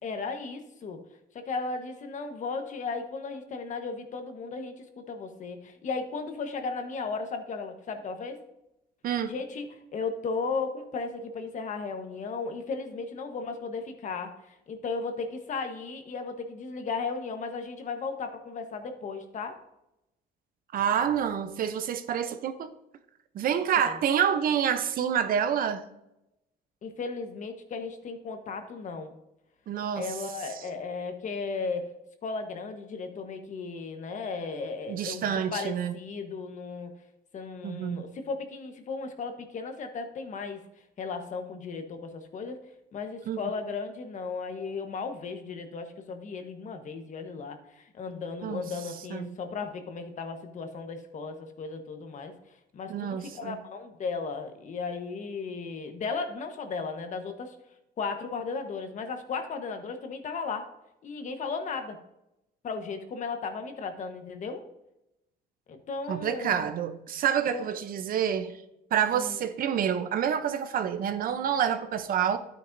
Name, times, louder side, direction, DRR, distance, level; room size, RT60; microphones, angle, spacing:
voice 1, 0.0-1.0 1.4-8.4 9.3-19.6 23.8-24.0 26.8-29.1 30.0-31.9 32.2-36.9 37.3-40.6 41.0-52.3 52.7-57.5 58.0-60.7 61.0-62.0 62.6-64.6 65.7-66.7 67.4-67.7 69.1-69.4, left 4 dB, 45° left, 1.3 m, -35 dB
voice 2, 9.0-9.3 20.7-22.7 23.3-25.9 29.7-30.1 34.9-35.9 37.6-38.0 43.3-43.4 48.4-48.7 49.1-49.3 52.9-53.6 66.1-68.6 68.9-72.4, right 8 dB, 55° right, 0.8 m, -28 dB
11.5 x 9.1 x 2.7 m
cardioid pair, 110°, 17 cm